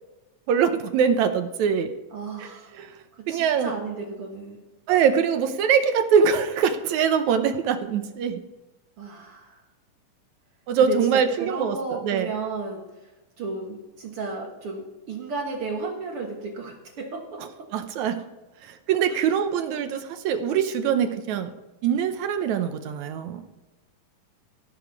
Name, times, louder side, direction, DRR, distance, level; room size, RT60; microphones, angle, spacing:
voice 1, 0.5-1.9 2.4-2.5 2.7-2.9 3.3-3.7 4.9-8.4 10.7-12.3 17.7-18.2 18.9-21.5 21.8-23.4, right 7 dB, 70° right, 8 dB, 2.0 m, -23 dB
voice 2, 2.1-2.8 3.2-4.6 9.0-9.6 10.8-12.9 13.4-17.7 19.1-19.3, right 4 dB, 55° right, 1 dB, 1.9 m, -33 dB
16.5 x 7.0 x 4.6 m, 1.1 s
omnidirectional pair, 3.8 m